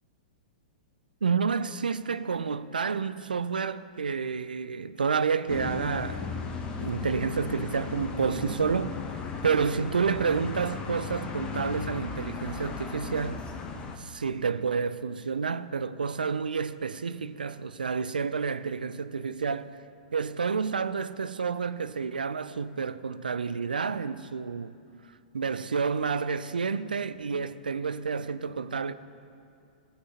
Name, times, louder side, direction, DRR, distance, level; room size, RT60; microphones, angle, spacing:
voice 1, 1.2-6.3 6.8-9.0 9.4-13.4 14.0-19.8 20.1-24.7 25.3-28.9, right 5 dB, 85° right, 0.3 m, -29 dB
sound 1, 5.5-14.0, left 5 dB, 20° left, 0.8 m, -36 dB
16.0 x 7.8 x 2.9 m
figure-of-eight pair, 110°, 5 cm